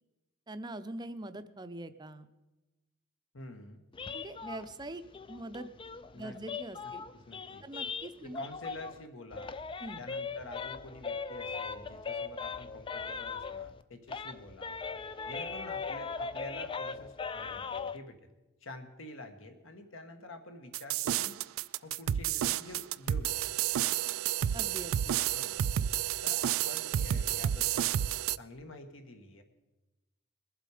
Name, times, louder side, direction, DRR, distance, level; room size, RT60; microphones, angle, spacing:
voice 1, 0.5-2.3 4.1-5.0 5.3-5.7 6.2-7.0 7.6-8.5 9.8-10.0 24.5-25.2, right 1 dB, 20° right, 11 dB, 0.6 m, -43 dB
voice 2, 3.3-3.8 6.1-6.4 6.8-7.6 8.2-9.6 10.0-14.8 15.3-18.3 18.6-21.4 21.8-23.3 23.6-23.7 25.3-25.6 26.2-28.0 28.4-29.4, left 2 dB, 70° left, 6 dB, 1.5 m, -48 dB
sound 1, 3.9-9.0 9.3-13.8 14.1-18.0, left 5 dB, 25° left, 0.4 m, -39 dB
sound 2, 20.7-28.4, right 11 dB, 75° right, 0.3 m, -30 dB
21.5 x 7.7 x 4.9 m, 1.0 s
head